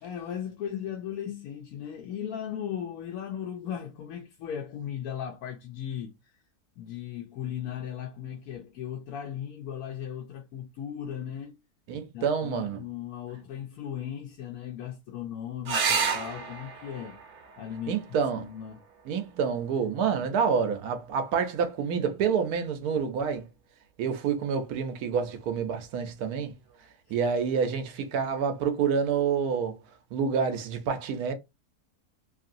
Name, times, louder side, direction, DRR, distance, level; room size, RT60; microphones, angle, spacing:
voice 1, 0.0-6.1 6.8-11.6 12.1-17.2 17.6-18.0 18.3-18.8 27.1-27.2, left 9 dB, 75° left, 1.0 m, -37 dB
voice 2, 11.9-12.8 17.9-18.4 19.1-23.5 24.0-26.5 27.1-29.8 30.1-31.3, right 6 dB, 80° right, 1.2 m, -28 dB
sound 1, 15.6-20.7 22.6-23.2 26.7-26.8 27.1-27.2, right 5 dB, 60° right, 0.9 m, -33 dB
3.0 x 2.7 x 2.5 m
omnidirectional pair, 1.6 m